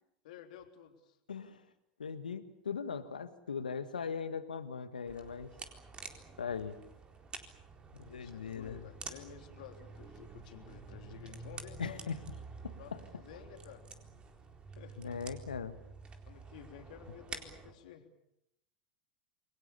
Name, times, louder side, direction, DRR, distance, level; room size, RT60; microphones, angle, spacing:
voice 1, 0.2-1.2 8.0-12.0 12.8-13.8 14.8-15.2 16.3-18.1, left 8 dB, 65° left, 5 dB, 3.6 m, -52 dB
voice 2, 1.3-1.6 2.0-5.5 6.4-6.8 7.9-8.8 11.8-12.2 12.6-13.0 15.0-15.8, left 6 dB, 85° left, 10 dB, 1.9 m, -39 dB
sound 1, 5.1-17.7, right 4 dB, 25° right, 4.1 m, -49 dB
28.5 x 23.0 x 7.1 m, 0.83 s
hypercardioid pair, 95°, 4 cm